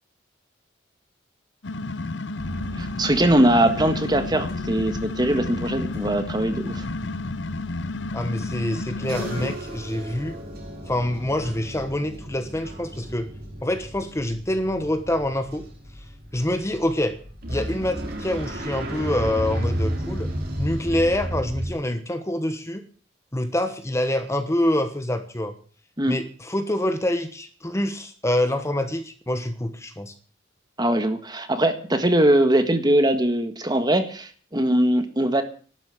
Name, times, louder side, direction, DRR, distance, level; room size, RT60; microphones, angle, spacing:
sound 1, 1.6-9.6, left 2 dB, 65° left, 0.7 m, -31 dB
sound 2, 2.4-21.7, equal, 55° right, 3.2 m, -34 dB
voice 1, 2.8-6.9 26.0-26.2 30.8-35.4, right 1 dB, 20° right, 8 dB, 1.6 m, -21 dB
voice 2, 8.1-10.4 10.8-13.3 13.6-15.6 16.3-17.2 17.5-20.3 20.6-22.8 23.3-25.5 26.1-30.1, left 1 dB, 15° left, 8 dB, 1.2 m, -26 dB
12.0 x 10.5 x 7.9 m, 0.42 s
head